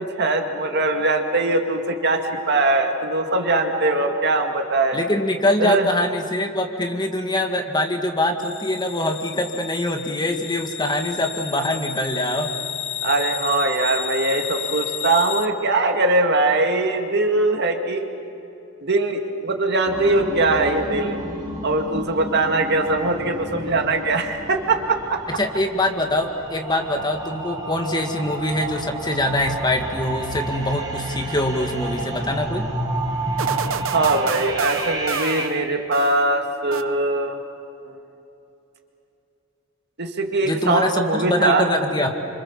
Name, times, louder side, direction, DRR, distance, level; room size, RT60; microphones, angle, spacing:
voice 1, 0.0-5.0 5.6-5.9 13.0-18.1 18.8-21.2 21.6-25.2 33.9-37.4 37.9-38.0 40.0-41.7, right 2 dB, 55° right, 4 dB, 2.1 m, -21 dB
voice 2, 4.9-12.5 25.3-32.7 40.5-42.1, left 1 dB, 20° left, 4 dB, 1.9 m, -24 dB
sound 1, 8.4-15.5, left 8 dB, 60° left, 1.1 m, -32 dB
sound 2, 19.9-35.5, right 2 dB, 20° right, 3.4 m, -31 dB
sound 3, 33.4-36.3 36.7-37.4, right 6 dB, 75° right, 0.8 m, -30 dB
28.5 x 26.0 x 7.3 m, 2.9 s
head